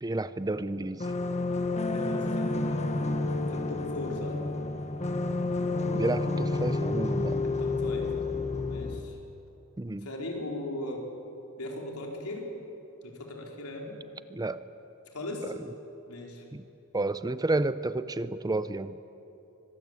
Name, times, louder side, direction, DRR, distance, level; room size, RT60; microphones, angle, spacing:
voice 1, 0.0-1.1 5.8-7.4 9.8-10.1 14.3-14.6 15.4-15.5 16.5-16.6 16.9-19.0, right 2 dB, 15° right, 14 dB, 0.5 m, -31 dB
sound 1, 1.0-9.0, left 2 dB, 30° left, 1.3 m, -30 dB
voice 2, 1.8-3.2 3.5-4.4 7.6-8.3 8.6-9.2 10.0-11.0 11.6-12.5 13.0-14.0 15.1-15.5 16.0-16.4, left 1 dB, 80° left, 0 dB, 4.5 m, -38 dB
24.5 x 22.0 x 8.3 m, 3.0 s
head